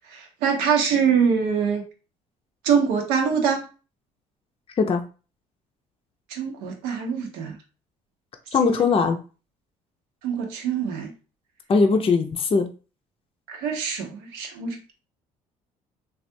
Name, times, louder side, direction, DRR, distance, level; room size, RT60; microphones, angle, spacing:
voice 1, 0.1-1.8 2.6-3.7 6.3-7.6 8.6-8.7 10.2-11.1 13.5-14.8, right 6 dB, 85° right, 0.7 m, -24 dB
voice 2, 8.5-9.2 11.7-12.7, left 4 dB, 35° left, 0.5 m, -20 dB
3.3 x 2.4 x 2.6 m
supercardioid pair, 70°, 16 cm